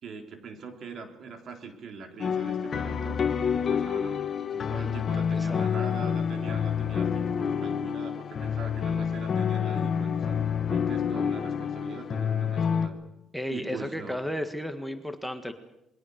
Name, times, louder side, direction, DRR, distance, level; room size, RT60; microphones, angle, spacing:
voice 1, 0.0-3.2 3.5-4.2 4.5-13.0 13.5-14.2, right 5 dB, 55° right, 5 dB, 3.8 m, -42 dB
sound 1, 2.2-12.9, left 7 dB, 45° left, 1.8 m, -28 dB
voice 2, 5.3-5.7 13.3-15.5, equal, ahead, 7 dB, 1.7 m, -34 dB
27.5 x 22.0 x 6.6 m, 0.84 s
cardioid pair, 100°, 0 cm